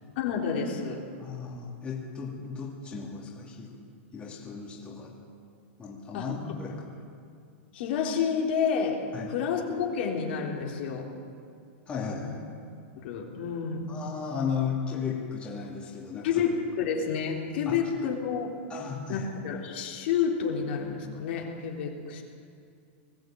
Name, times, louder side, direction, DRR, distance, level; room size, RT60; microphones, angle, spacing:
voice 1, 0.2-1.0 6.1-6.3 7.7-9.0 9.3-11.1 12.2-12.3 13.0-13.9 16.2-18.5 19.1-22.2, left 6 dB, 55° left, 0 dB, 3.5 m, -29 dB
voice 2, 1.2-3.8 4.1-5.2 5.8-7.0 9.1-9.3 11.9-12.4 13.9-16.4 17.7-17.8 18.7-19.3, left 6 dB, 15° left, -3 dB, 2.7 m, -35 dB
20.5 x 14.5 x 9.0 m, 2.4 s
supercardioid pair, 155°, 7 cm